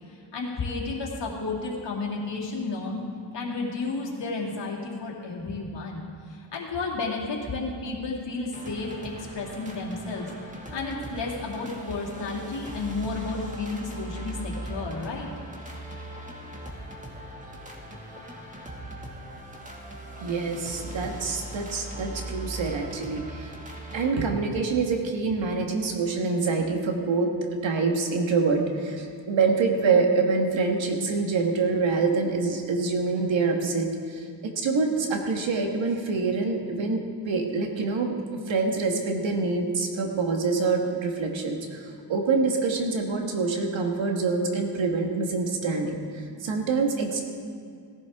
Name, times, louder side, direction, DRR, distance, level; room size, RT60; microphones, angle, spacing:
voice 1, 0.1-3.1 3.3-6.0 6.3-10.3 10.7-15.3, left 3 dB, 70° left, -2 dB, 2.5 m, -32 dB
sound 1, 8.5-24.1, right 1 dB, 15° right, 2.1 m, -39 dB
voice 2, 20.2-23.5 23.9-27.4 27.6-34.2 34.6-38.1 38.5-46.0 46.4-47.2, right 4 dB, 85° right, 2 dB, 1.6 m, -26 dB
17.5 x 11.5 x 3.6 m, 2.3 s
cardioid pair, 80°, 44 cm